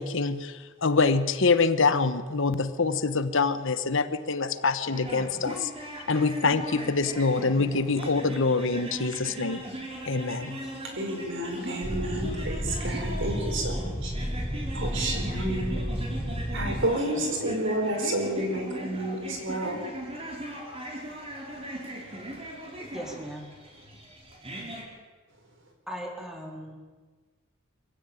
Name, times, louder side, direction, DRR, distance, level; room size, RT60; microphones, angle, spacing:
voice 1, 0.0-5.7 6.1-9.6 10.1-10.6, left 4 dB, 65° left, 11 dB, 1.1 m, -25 dB
sound 1, 4.9-24.8, right 1 dB, 30° right, 5.0 m, -39 dB
voice 2, 11.0-14.1 14.7-15.8 16.5-19.8, right 1 dB, 65° right, 4 dB, 4.7 m, -30 dB
sound 2, 11.8-16.9, equal, 15° left, 5.7 m, -31 dB
voice 3, 22.9-23.5 25.9-26.9, equal, 5° right, 0 dB, 3.9 m, -38 dB
23.5 x 16.0 x 9.1 m, 1.4 s
head